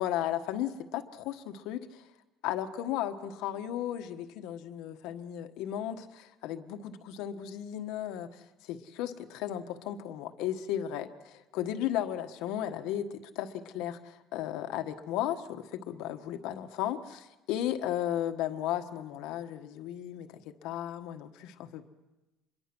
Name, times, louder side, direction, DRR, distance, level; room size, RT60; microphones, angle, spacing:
voice 1, 0.0-2.0 2.4-8.3 8.6-21.9, left 11 dB, 75° left, 7 dB, 1.4 m, -35 dB
26.0 x 22.5 x 6.2 m, 1.1 s
cardioid pair, 160°, 0 cm